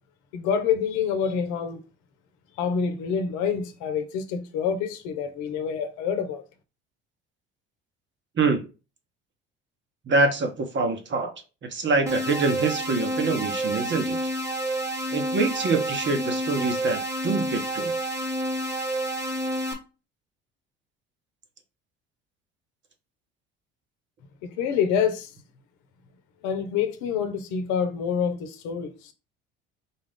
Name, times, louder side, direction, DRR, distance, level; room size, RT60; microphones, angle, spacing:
voice 1, 0.3-1.8 2.6-6.4 24.4-25.3 26.4-29.1, left 7 dB, 70° left, 0.9 m, -27 dB
voice 2, 10.1-11.3 11.6-14.2 15.1-17.9, right 3 dB, 40° right, 1.2 m, -25 dB
sound 1, 12.1-19.7, right 1 dB, 10° right, 1.2 m, -29 dB
4.2 x 2.5 x 3.6 m
hypercardioid pair, 70°, 30 cm